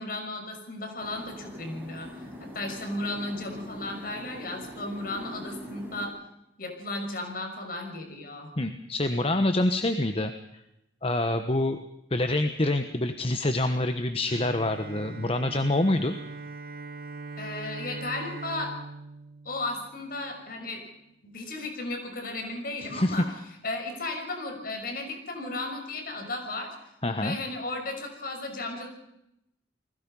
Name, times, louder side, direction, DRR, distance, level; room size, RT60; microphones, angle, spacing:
voice 1, 0.0-6.1 6.6-8.6 17.4-18.7 19.4-20.8 21.2-23.3 23.6-26.8 27.2-28.9, left 2 dB, 55° left, 4 dB, 6.2 m, -35 dB
sound 1, 1.0-6.1, left 1 dB, 10° right, 6.4 m, -43 dB
voice 2, 8.6-10.3 11.0-11.8 12.1-16.1 22.9-23.2 27.0-27.4, left 1 dB, 35° left, 8 dB, 1.2 m, -26 dB
Bowed string instrument, 14.3-20.5, right 3 dB, 55° right, 1.3 m, -41 dB
30.0 x 20.5 x 5.5 m, 0.83 s
head